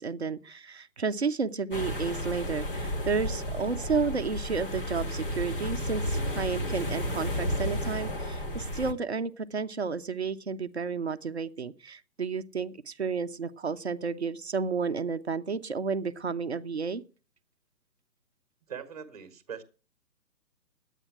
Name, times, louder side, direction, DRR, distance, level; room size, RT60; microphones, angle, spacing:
voice 1, 0.0-17.0, right 5 dB, 40° right, 10 dB, 0.7 m, -32 dB
sound 1, 1.7-8.9, equal, 30° left, 1.4 m, -32 dB
voice 2, 18.7-19.6, right 8 dB, 25° right, 10 dB, 1.3 m, -41 dB
11.0 x 9.1 x 7.3 m, 0.37 s
hypercardioid pair, 170°, 50 cm